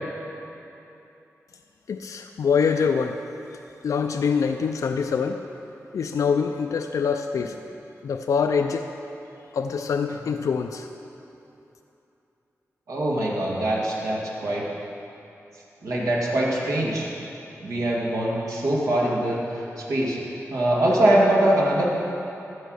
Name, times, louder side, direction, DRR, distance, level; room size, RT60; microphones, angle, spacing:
voice 1, 1.9-3.2 3.8-5.4 5.9-7.6 8.0-8.9 9.5-10.9, left 6 dB, 80° left, 6 dB, 0.4 m, -24 dB
voice 2, 12.9-14.6 15.8-17.1 17.6-20.2 20.5-21.8, right 1 dB, 85° right, -4 dB, 2.1 m, -23 dB
14.5 x 5.5 x 6.4 m, 2.9 s
wide cardioid pair, 95°, 5 cm